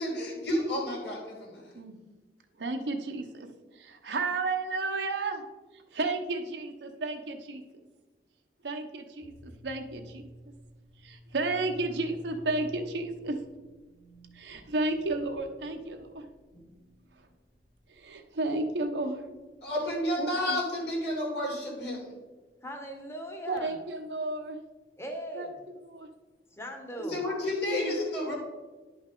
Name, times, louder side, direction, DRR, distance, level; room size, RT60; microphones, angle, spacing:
voice 1, 0.0-1.7 16.5-16.6 19.6-22.1 27.1-28.3, left 1 dB, 80° left, -3 dB, 2.8 m, -31 dB
voice 2, 2.6-3.5 3.8-5.4 5.9-7.6 8.6-10.2 11.0-13.4 14.3-16.2 18.0-19.3 20.2-20.6 23.5-24.6 25.3-26.1 27.6-27.9, right 2 dB, 80° right, 4 dB, 0.8 m, -32 dB
sound 1, 9.2-20.5, right 1 dB, 30° left, 1.6 m, -51 dB
voice 3, 22.6-23.7 25.0-25.6 26.5-27.2, equal, 15° left, 4 dB, 1.0 m, -39 dB
10.5 x 5.4 x 3.7 m, 1.3 s
head